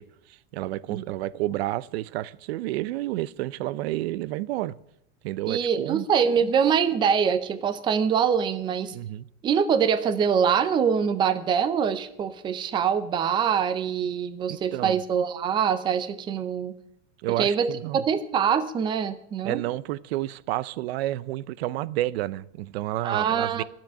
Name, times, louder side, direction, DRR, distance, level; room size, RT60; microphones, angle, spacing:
voice 1, 0.0-4.8 5.2-6.1 8.9-9.3 14.5-15.0 17.2-18.1 19.4-23.6, right 15 dB, 75° right, 0.6 m, -30 dB
voice 2, 5.5-8.9 9.4-16.7 17.4-19.6 23.0-23.6, right 7 dB, 15° right, 0.5 m, -24 dB
11.5 x 7.6 x 9.4 m
supercardioid pair, 160°, 31 cm